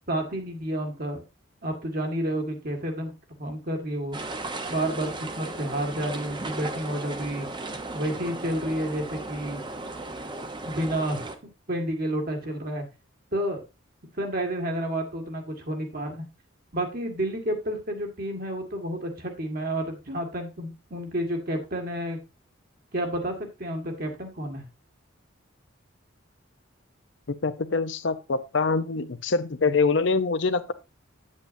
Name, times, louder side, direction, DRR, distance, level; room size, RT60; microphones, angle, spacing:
voice 1, 0.1-1.2 1.6-3.1 3.4-4.2 4.7-7.5 7.9-9.6 10.6-11.3 11.7-12.9 13.3-13.6 14.2-16.2 16.7-22.2 22.9-24.6, right 1 dB, 50° right, 1.9 m, -30 dB
sound 1, 4.1-11.4, right 2 dB, 25° right, 0.8 m, -36 dB
voice 2, 27.4-30.7, left 4 dB, 65° left, 0.7 m, -24 dB
8.5 x 8.2 x 2.6 m
head